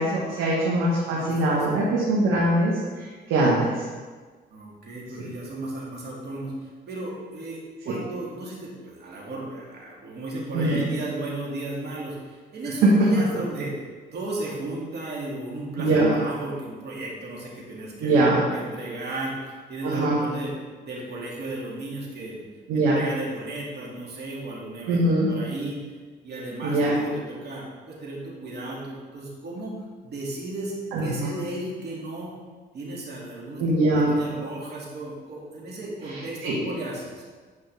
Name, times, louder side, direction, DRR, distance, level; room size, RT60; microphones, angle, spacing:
voice 1, 0.0-2.7 3.0-3.8 5.2-5.3 7.9-8.0 10.5-10.8 12.8-12.9 15.8-16.2 18.0-18.4 19.8-20.2 22.7-23.0 24.9-25.3 26.6-27.0 30.9-31.3 33.6-34.2 36.1-36.6, right 2 dB, 90° right, -6 dB, 1.5 m, -22 dB
voice 2, 1.1-1.8 4.5-6.5 6.9-13.8 14.1-18.2 18.5-19.3 19.7-20.5 20.8-22.4 22.7-25.8 26.2-29.8 30.0-32.3 32.7-33.6 33.9-37.2, right 2 dB, 55° right, -4 dB, 2.4 m, -34 dB
8.9 x 5.3 x 3.5 m, 1.4 s
cardioid pair, 90°, 20 cm